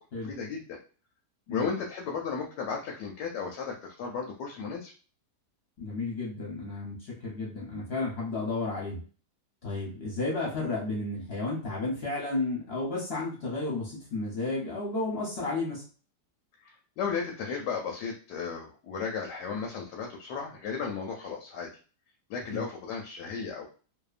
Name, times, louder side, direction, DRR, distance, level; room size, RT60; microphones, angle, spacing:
voice 1, 0.2-0.8 1.5-4.9 16.6-21.7 22.3-23.7, left 5 dB, 80° left, 0 dB, 1.2 m, -34 dB
voice 2, 5.8-9.0 9.6-15.8 22.5-22.7, left 2 dB, 50° left, -4 dB, 0.8 m, -32 dB
2.7 x 2.2 x 2.4 m, 0.38 s
omnidirectional pair, 1.8 m